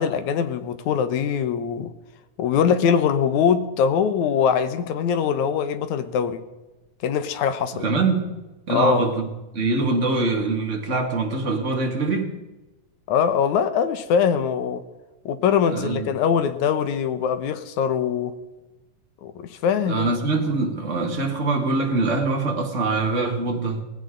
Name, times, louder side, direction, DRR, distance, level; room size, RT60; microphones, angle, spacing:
voice 1, 0.0-1.9 2.4-6.4 7.0-7.8 8.7-9.0 13.1-14.8 15.3-18.4 19.2-20.1, left 7 dB, 75° left, 11 dB, 2.3 m, -22 dB
voice 2, 7.7-8.3 8.7-12.4 15.7-16.1 19.9-23.8, right 3 dB, 25° right, 2 dB, 2.0 m, -24 dB
19.0 x 16.0 x 3.9 m, 1.1 s
omnidirectional pair, 3.5 m